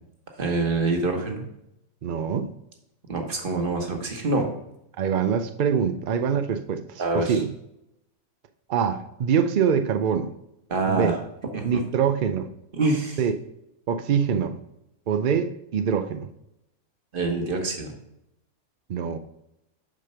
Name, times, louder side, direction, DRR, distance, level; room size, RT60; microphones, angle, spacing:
voice 1, 0.4-1.4 3.1-4.5 7.0-7.4 10.7-11.2 11.5-11.8 12.7-13.2 17.1-17.9, right 3 dB, 40° right, 3 dB, 1.4 m, -25 dB
voice 2, 2.0-2.5 5.0-7.5 8.7-10.3 10.9-11.1 11.6-12.5 13.2-13.3 13.9-14.5 15.1-16.3 18.9-19.2, right 7 dB, 80° right, 8 dB, 0.4 m, -24 dB
7.4 x 5.1 x 5.6 m, 0.81 s
omnidirectional pair, 1.5 m